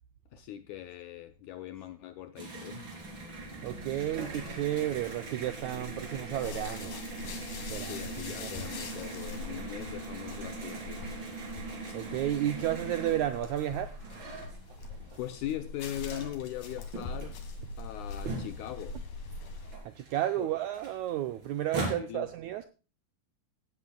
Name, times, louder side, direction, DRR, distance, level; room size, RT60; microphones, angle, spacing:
voice 1, 0.3-3.0 7.8-11.1 15.2-17.4 17.8-19.3 20.4-20.5 22.0-22.3, left 12 dB, 80° left, 1.7 m, -40 dB
sound 1, 2.4-15.2 15.6-19.0 19.3-19.4 19.6-22.0, right 3 dB, 35° right, 3.8 m, -41 dB
sound 2, 3.0-19.8, left 3 dB, 60° left, 3.5 m, -43 dB
voice 2, 3.6-7.0 7.7-8.1 8.4-8.6 11.9-14.4 15.1-15.2 19.8-22.6, right 12 dB, 85° right, 1.7 m, -32 dB
Truck, 8.4-14.2, right 4 dB, 50° right, 4.1 m, -57 dB
17.0 x 12.0 x 2.3 m
omnidirectional pair, 4.1 m